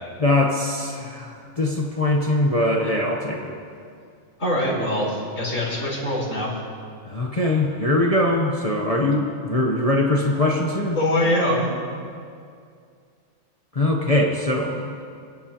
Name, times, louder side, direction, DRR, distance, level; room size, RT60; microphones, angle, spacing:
voice 1, 0.2-3.6 7.0-11.0 13.7-14.9, left 1 dB, 30° left, -1 dB, 1.0 m, -22 dB
voice 2, 4.4-6.5 11.0-11.7, left 1 dB, 65° left, -7 dB, 4.9 m, -23 dB
28.5 x 11.0 x 3.0 m, 2.3 s
omnidirectional pair, 1.4 m